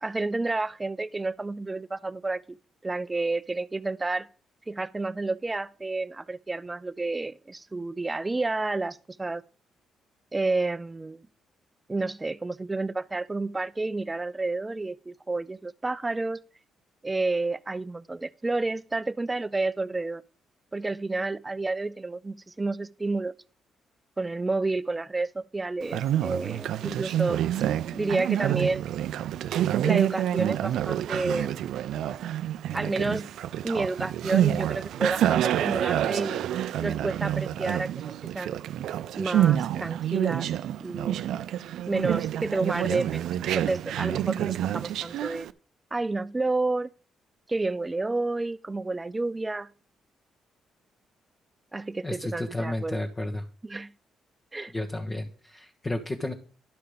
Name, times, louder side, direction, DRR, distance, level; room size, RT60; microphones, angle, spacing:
voice 1, 0.0-2.6 2.8-4.3 4.7-9.4 10.3-11.2 11.9-16.4 17.0-20.2 20.7-23.3 24.2-27.4 27.9-28.8 29.8-31.6 32.7-33.3 33.6-36.4 36.8-37.9 38.2-38.6 39.2-40.5 40.8-41.2 41.9-45.5 45.9-46.9 47.5-49.7 51.7-53.0 53.6-53.9 54.5-54.7, right 3 dB, 25° right, 0.5 m, -30 dB
Conversation, 25.8-45.5, right 11 dB, 75° right, 0.4 m, -28 dB
voice 2, 52.0-53.4 54.7-56.3, left 1 dB, 30° left, 1.4 m, -32 dB
11.5 x 5.7 x 5.0 m
supercardioid pair, 60°, 0 cm